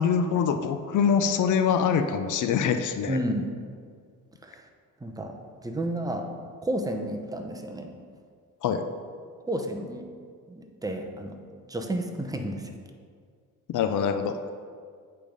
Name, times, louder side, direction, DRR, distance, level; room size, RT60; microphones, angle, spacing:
voice 1, 0.0-3.2 8.6-8.9 13.7-14.4, left 7 dB, 60° left, 8 dB, 0.5 m, -24 dB
voice 2, 3.1-3.5 4.4-4.7 5.0-5.3 5.6-6.3 6.6-7.9 9.5-10.1 10.5-11.3 11.7-12.7, right 1 dB, 10° right, 4 dB, 0.7 m, -31 dB
8.4 x 3.4 x 5.2 m, 2.1 s
cardioid pair, 95°, 34 cm